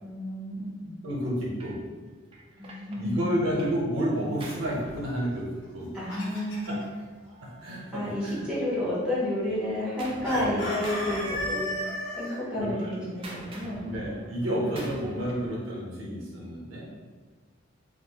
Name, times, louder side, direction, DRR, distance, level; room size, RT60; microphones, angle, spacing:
voice 1, 0.0-0.9 2.6-3.5 5.9-6.9 7.9-11.7 12.2-13.8 14.4-14.9, left 1 dB, 5° right, -8 dB, 0.7 m, -31 dB
voice 2, 1.0-1.8 2.9-6.0 6.7-6.8 7.6-8.4 10.3-10.7 12.6-12.7 13.8-16.9, equal, 85° right, -4 dB, 0.7 m, -30 dB
Gunshot gunfire, 1.6-1.8 2.3-3.8 4.1-5.8 6.8-8.6 9.0-10.5 10.8-12.1 12.4-15.6, right 1 dB, 25° right, 0.3 m, -45 dB
Chicken rooster, 5.6-6.8 10.2-12.4, equal, 80° left, 1.1 m, -34 dB
2.5 x 2.3 x 2.8 m, 1.4 s
head